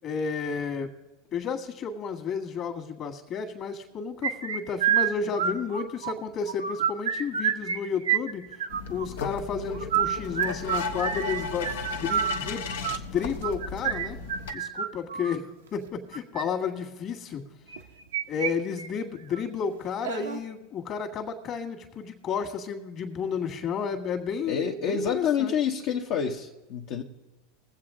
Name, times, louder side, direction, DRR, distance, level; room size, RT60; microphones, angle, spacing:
voice 1, 0.0-0.9 1.3-14.2 14.5-17.4 18.3-25.5, left 6 dB, 40° left, 5 dB, 1.7 m, -32 dB
sound 1, 4.2-6.1 6.5-7.8 8.0-9.1 9.7-15.4 16.1-16.4 17.7-18.5 18.8-18.9 19.3-19.4 20.0-20.4, right 9 dB, 85° right, 0.8 m, -28 dB
sound 2, 8.7-14.5, left 4 dB, 80° left, 1.0 m, -35 dB
voice 2, 24.4-27.0, left 7 dB, 60° left, -1 dB, 1.0 m, -28 dB
21.0 x 7.8 x 3.8 m, 1.1 s
hypercardioid pair, 95°, 0 cm